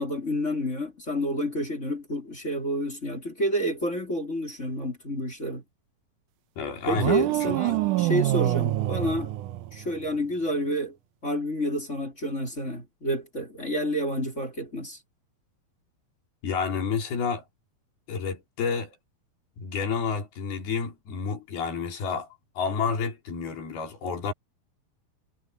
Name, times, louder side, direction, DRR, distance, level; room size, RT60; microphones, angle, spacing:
voice 1, 0.0-5.6 6.9-9.3 9.7-11.0 11.2-15.0, equal, 20° left, 3.6 m, -29 dB
voice 2, 6.6-7.8 16.4-17.4 18.1-19.0 19.6-22.3 22.6-24.3, left 5 dB, 80° left, 6.0 m, -30 dB
sound 1, 6.9-10.1, right 16 dB, 80° right, 1.8 m, -26 dB
omnidirectional pair, 4.4 m